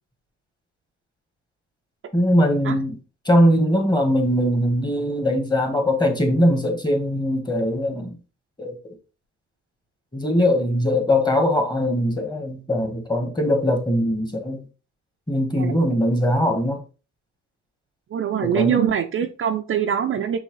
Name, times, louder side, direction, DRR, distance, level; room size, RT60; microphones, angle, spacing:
voice 1, 2.1-3.0 3.2-8.2 8.6-8.8 10.1-14.6 15.3-16.8 18.4-18.8, equal, 15° left, 1.2 m, -21 dB
voice 2, 18.1-20.4, right 8 dB, 45° right, 0.5 m, -23 dB
5.5 x 3.0 x 3.0 m
cardioid pair, 90°, 30 cm